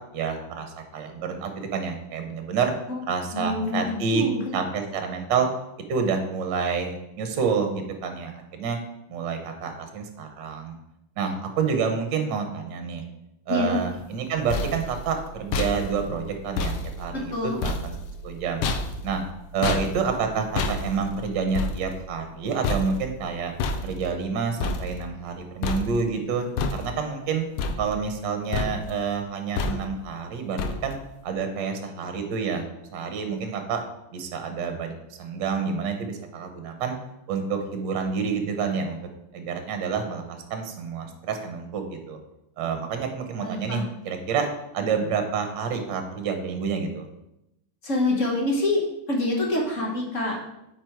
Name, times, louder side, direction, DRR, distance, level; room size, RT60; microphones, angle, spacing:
voice 1, 0.1-2.7 3.1-4.2 4.5-5.5 5.9-8.8 9.1-10.7 11.2-13.0 13.5-17.9 18.2-18.7 19.0-19.2 19.5-23.5 23.8-26.4 26.7-27.4 27.8-31.0 31.2-32.6 32.9-33.8 34.1-36.9 37.3-39.0 39.3-42.2 42.6-44.5 44.7-47.0, right 5 dB, 60° right, 6 dB, 1.5 m, -28 dB
voice 2, 3.3-4.5 13.5-13.8 17.1-17.6 43.4-43.8 47.8-48.8 49.1-50.4, left 2 dB, 40° left, -1 dB, 1.4 m, -26 dB
sound 1, 14.1-25.4 25.6-26.2 26.6-27.2 27.6-28.3 28.5-29.0 29.6-30.1 30.6-31.1, left 3 dB, 85° left, 1.6 m, -31 dB
8.3 x 4.6 x 4.6 m, 0.87 s
omnidirectional pair, 2.4 m